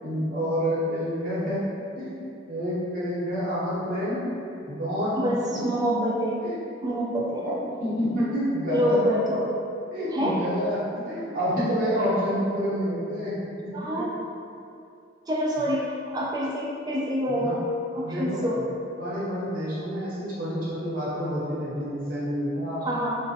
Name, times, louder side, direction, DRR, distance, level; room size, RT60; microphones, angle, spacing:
voice 1, 0.0-1.6 2.0-2.2 2.5-4.3 4.7-5.3 6.4-6.6 7.4-7.5 7.8-9.0 9.9-13.4 13.6-14.0 17.3-17.5 18.0-18.4 19.0-22.9, equal, 50° right, -9 dB, 0.8 m, -28 dB
voice 2, 5.2-6.4 6.8-7.7 8.7-9.5 10.1-10.4 13.7-14.1 15.3-17.6 17.9-18.6 22.8-23.2, equal, 20° right, -4 dB, 0.3 m, -26 dB
2.4 x 2.1 x 2.6 m, 2.6 s
head